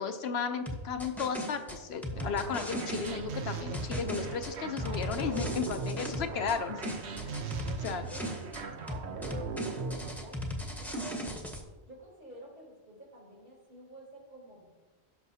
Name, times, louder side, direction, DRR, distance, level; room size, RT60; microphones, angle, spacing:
voice 1, 0.0-6.9 7.8-8.1, left 6 dB, 75° left, 8 dB, 0.9 m, -34 dB
sound 1, 0.7-3.2 3.7-6.6 6.8-8.6 8.9-11.6, equal, ahead, 1.0 m, -37 dB
sound 2, 2.1-10.2, right 5 dB, 85° right, 1.1 m, -39 dB
voice 2, 7.7-10.4 10.8-11.4 11.8-14.7, right 1 dB, 60° right, -4 dB, 3.7 m, -51 dB
16.0 x 6.2 x 2.8 m, 1.3 s
omnidirectional pair, 1.1 m